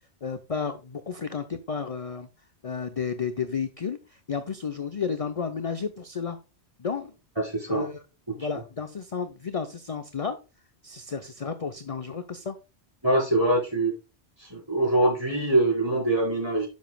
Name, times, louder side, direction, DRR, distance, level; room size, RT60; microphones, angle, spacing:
voice 1, 0.2-2.3 2.6-6.4 6.8-7.1 7.7-8.0 8.4-10.4 10.8-12.6, left 6 dB, 35° left, 9 dB, 0.7 m, -32 dB
voice 2, 7.4-7.9 8.4-8.5 13.0-13.9 14.4-16.7, right 1 dB, 25° right, -2 dB, 4.9 m, -24 dB
10.5 x 7.3 x 2.3 m, 0.29 s
omnidirectional pair, 1.1 m